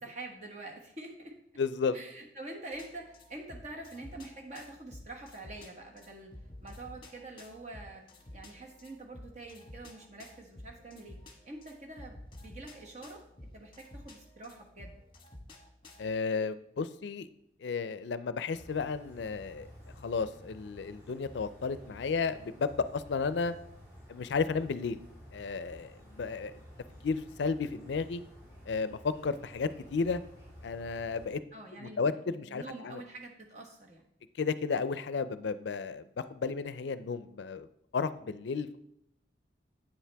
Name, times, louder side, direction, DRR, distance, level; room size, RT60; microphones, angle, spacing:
voice 1, 0.0-1.4 1.9-6.3 6.6-8.0 8.3-11.2 11.4-13.2 13.5-14.9 31.5-34.0, right 2 dB, 40° right, 1 dB, 1.4 m, -46 dB
voice 2, 1.6-2.0 16.0-17.3 17.6-19.7 20.0-23.5 24.1-25.0 25.3-26.5 27.0-28.2 28.7-30.2 30.6-31.4 31.8-33.0 34.4-37.7 37.9-38.8, left 5 dB, 75° left, 14 dB, 0.4 m, -33 dB
sound 1, 2.7-16.2, left 1 dB, 25° left, 1.1 m, -52 dB
sound 2, 18.5-31.3, equal, 20° right, 3.3 m, -52 dB
8.7 x 7.4 x 3.4 m, 0.74 s
head